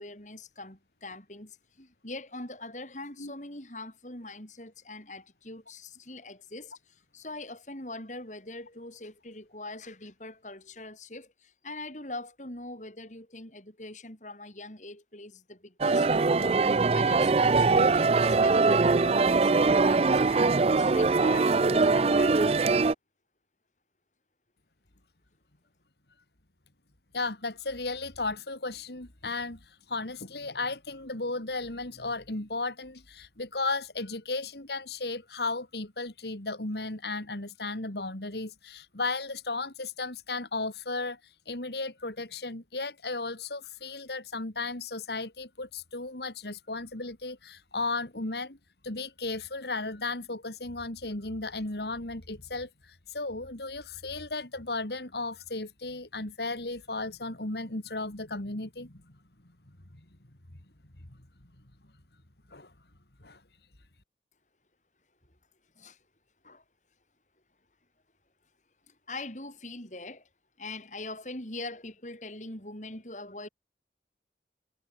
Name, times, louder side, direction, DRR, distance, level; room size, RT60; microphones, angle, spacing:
voice 1, 0.0-22.7 65.8-66.0 66.4-66.6 68.9-70.3 70.6-73.5, left 2 dB, 45° left, 6.5 m, -42 dB
sound 1, 15.8-22.9, right 4 dB, 35° right, 0.4 m, -22 dB
voice 2, 27.1-41.2 41.5-48.6 48.8-58.9 62.5-62.7 63.2-63.4, left 3 dB, 70° left, 2.9 m, -35 dB
head